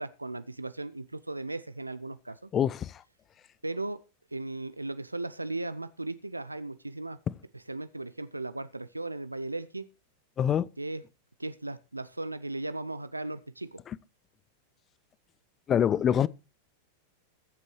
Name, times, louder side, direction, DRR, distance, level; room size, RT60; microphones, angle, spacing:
voice 1, 0.0-2.5 3.6-4.0 4.3-7.2 7.7-9.9 10.8-11.0 11.4-13.8, right 2 dB, 85° right, 0.5 m, -36 dB
voice 2, 2.5-3.0 7.3-7.4 10.4-10.7 13.9-14.0 15.7-16.3, left 9 dB, 25° left, 0.5 m, -25 dB
21.5 x 8.0 x 3.1 m
figure-of-eight pair, 90°, 0 cm